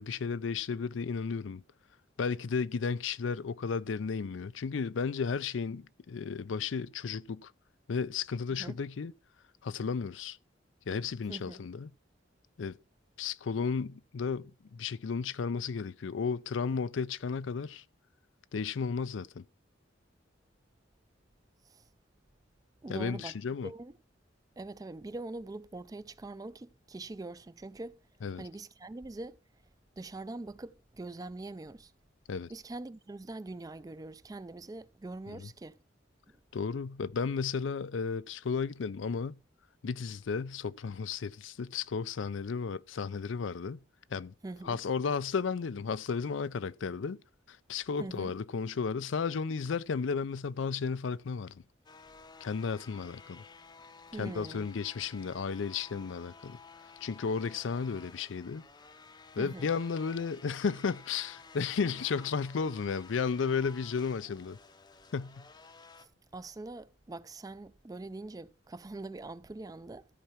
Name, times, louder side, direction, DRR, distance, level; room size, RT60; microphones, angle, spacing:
voice 1, 0.0-1.6 2.2-7.5 7.9-9.1 9.6-10.4 10.9-11.9 12.6-12.8 13.2-17.8 18.5-19.4 22.9-23.7 28.2-28.4 32.3-32.5 35.3-35.5 36.5-39.4 39.8-43.8 44.1-44.3 44.6-47.2 47.5-51.6 52.4-53.4 54.2-56.6 57.0-58.6 59.4-64.6 65.1-65.5, left 5 dB, 80° left, 0.5 m, -33 dB
voice 2, 8.5-8.8 11.3-11.6 21.7-21.9 22.8-23.4 23.6-24.0 24.6-28.0 28.3-29.4 30.0-31.9 32.5-35.8 36.3-36.4 44.4-44.8 48.0-48.3 54.1-54.7 59.4-59.7 66.0-70.1, right 2 dB, 20° right, 0.4 m, -43 dB
sound 1, 51.8-66.1, left 4 dB, 25° left, 0.6 m, -54 dB
13.5 x 4.6 x 5.7 m
head